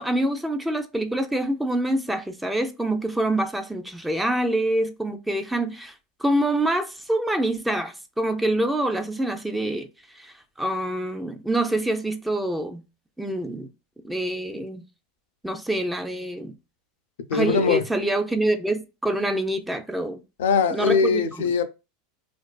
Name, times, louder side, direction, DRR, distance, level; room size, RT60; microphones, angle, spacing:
voice 1, 0.0-5.9 6.2-9.9 10.2-12.8 13.2-13.7 14.0-14.8 15.4-16.6 17.3-20.2 20.7-21.5, right 1 dB, 5° right, 0.4 m, -26 dB
voice 2, 17.3-17.8 20.4-21.6, left 5 dB, 90° left, 0.4 m, -21 dB
2.4 x 2.3 x 2.2 m
supercardioid pair, 130°, 0 cm